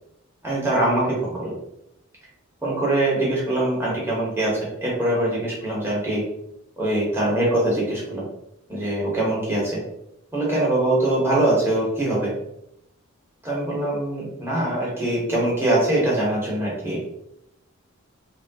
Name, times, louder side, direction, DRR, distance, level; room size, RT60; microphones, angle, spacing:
voice 1, 0.4-1.5 2.6-6.3 6.8-8.3 8.7-9.8 10.3-12.3 13.4-17.0, right 1 dB, 10° right, -5 dB, 0.8 m, -23 dB
2.9 x 2.2 x 2.7 m, 0.80 s
head